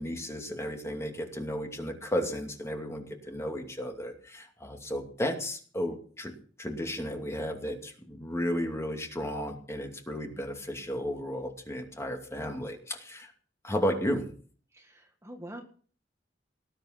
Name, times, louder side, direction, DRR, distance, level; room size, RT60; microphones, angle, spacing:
voice 1, 0.0-6.3 6.6-13.3 13.6-14.3, equal, 15° left, 3 dB, 2.6 m, -33 dB
voice 2, 14.7-15.6, right 1 dB, 15° right, 3 dB, 1.8 m, -45 dB
19.5 x 9.4 x 5.9 m, 0.43 s
head